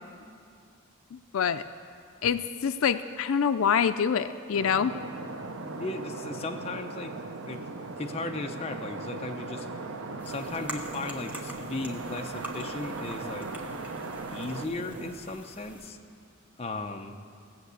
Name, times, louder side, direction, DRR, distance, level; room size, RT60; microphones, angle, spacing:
voice 1, 1.1-1.6 2.2-4.9, left 7 dB, 80° left, 11 dB, 0.4 m, -26 dB
sound 1, 4.5-15.1, right 3 dB, 75° right, 0.8 m, -38 dB
voice 2, 5.8-7.1 7.4-7.6 8.0-9.7 10.2-13.5 14.3-16.0 16.6-17.1, left 2 dB, 30° left, 4 dB, 0.7 m, -36 dB
sound 2, 10.2-15.9, right 1 dB, 10° right, 1.0 m, -45 dB
17.5 x 7.1 x 8.2 m, 2.4 s
head